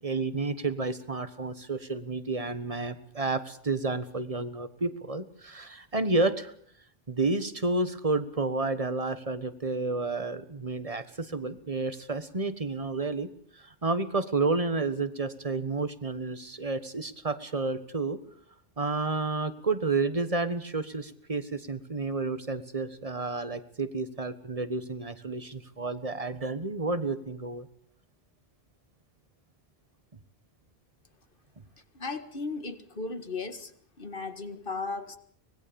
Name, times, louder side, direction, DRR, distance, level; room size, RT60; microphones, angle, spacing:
voice 1, 0.0-6.5 7.1-18.2 18.8-27.7, right 3 dB, 35° right, 13 dB, 1.5 m, -30 dB
voice 2, 32.0-33.7 34.0-35.2, left 3 dB, 60° left, 11 dB, 1.9 m, -36 dB
25.0 x 20.5 x 7.1 m, 0.62 s
omnidirectional pair, 1.0 m